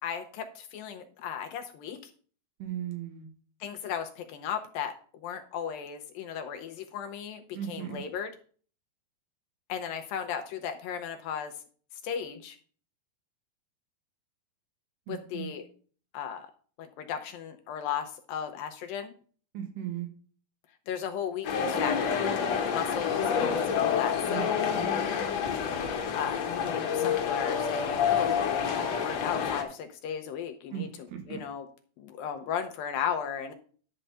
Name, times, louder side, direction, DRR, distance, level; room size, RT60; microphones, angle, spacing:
voice 1, 0.0-2.0 3.6-8.3 9.7-11.5 12.0-12.6 15.1-15.7 16.1-16.5 16.8-19.1 20.9-22.2 22.7-24.6 26.1-31.7 32.0-33.5, left 8 dB, 80° left, 6 dB, 2.3 m, -36 dB
voice 2, 2.6-3.3 7.6-8.0 15.1-15.5 19.5-20.1 24.3-24.9 30.7-31.4, right 10 dB, 85° right, 5 dB, 3.7 m, -37 dB
sound 1, 21.4-29.6, left 7 dB, 60° left, 1.9 m, -28 dB
11.5 x 4.3 x 6.6 m, 0.43 s
omnidirectional pair, 4.6 m